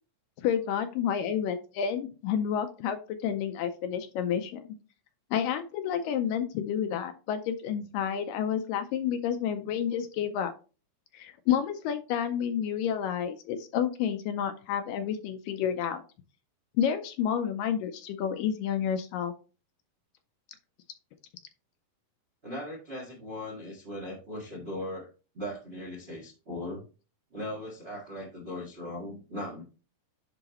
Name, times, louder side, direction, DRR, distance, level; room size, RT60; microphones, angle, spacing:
voice 1, 0.4-4.8 5.3-10.5 11.1-16.0 16.8-19.3, left 8 dB, 80° left, 8 dB, 2.1 m, -30 dB
voice 2, 22.4-25.1 25.3-26.8 27.3-29.6, left 1 dB, 65° right, -2 dB, 0.6 m, -38 dB
10.5 x 3.9 x 2.9 m, 0.34 s
omnidirectional pair, 4.3 m